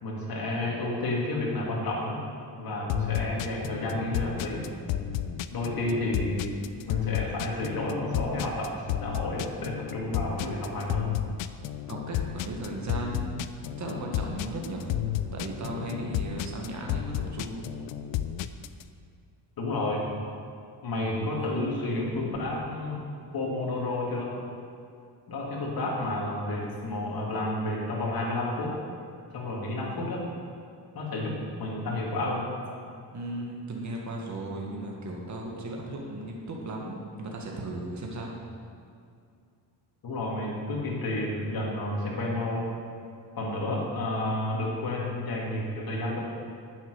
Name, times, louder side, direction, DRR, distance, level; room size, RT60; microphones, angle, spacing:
voice 1, 0.0-2.2 2.6-4.6 5.5-6.5 6.9-11.1 19.6-20.0 20.8-23.0 23.3-24.3 25.3-28.7 29.3-30.2 30.9-32.5 40.0-42.6 43.4-46.2, left 2 dB, 55° left, -3 dB, 2.8 m, -31 dB
sound 1, 2.9-18.8, left 11 dB, 90° left, 0.6 m, -32 dB
voice 2, 11.9-14.9 15.3-17.8 33.1-38.3, right 1 dB, 40° right, -1 dB, 1.8 m, -36 dB
9.0 x 7.5 x 6.6 m, 2.4 s
cardioid pair, 105°, 43 cm